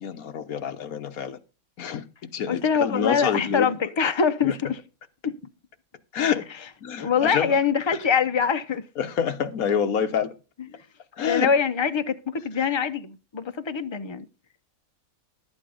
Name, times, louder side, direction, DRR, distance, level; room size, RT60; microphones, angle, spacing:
voice 1, 0.0-1.4 1.8-2.0 2.3-3.7 4.4-4.5 6.1-6.4 6.8-7.5 9.0-10.3 11.2-11.5, left 7 dB, 70° left, 1.5 m, -27 dB
voice 2, 2.5-4.8 5.2-5.3 7.0-8.9 11.2-14.3, left 6 dB, 45° left, 0.3 m, -24 dB
11.5 x 8.2 x 5.0 m
omnidirectional pair, 1.6 m